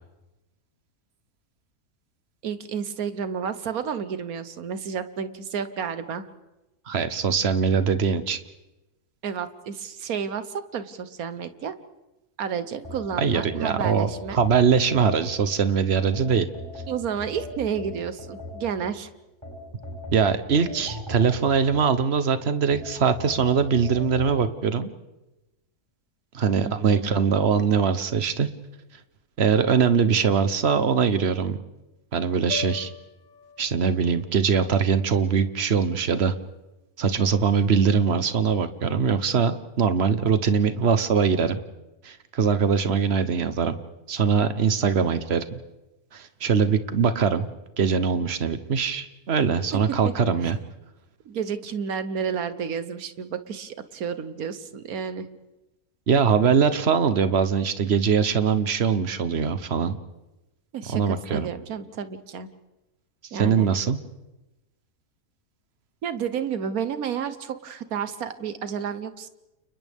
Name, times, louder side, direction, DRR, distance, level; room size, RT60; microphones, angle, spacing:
voice 1, 2.4-6.3 9.2-11.7 12.4-14.4 16.9-19.1 26.6-27.1 49.7-50.1 50.4-50.5 51.2-55.3 60.7-62.5 63.3-63.8 66.0-69.3, right 7 dB, 70° right, 11 dB, 1.5 m, -31 dB
voice 2, 6.9-8.4 13.2-16.5 20.1-24.9 26.3-28.5 29.4-31.6 32.1-32.9 33.6-36.3 37.0-41.6 42.0-43.8 44.1-45.6 46.1-47.5 47.8-50.6 56.1-60.0 60.9-61.5 63.3-64.0, right 6 dB, 50° right, 11 dB, 1.2 m, -22 dB
sound 1, 12.8-15.6 16.1-18.9 19.4-22.2 22.7-24.3, left 1 dB, 15° right, 6.1 m, -39 dB
sound 2, 32.5-36.8, left 6 dB, 85° left, 1.9 m, -42 dB
30.0 x 29.5 x 3.6 m, 1.0 s
omnidirectional pair, 1.6 m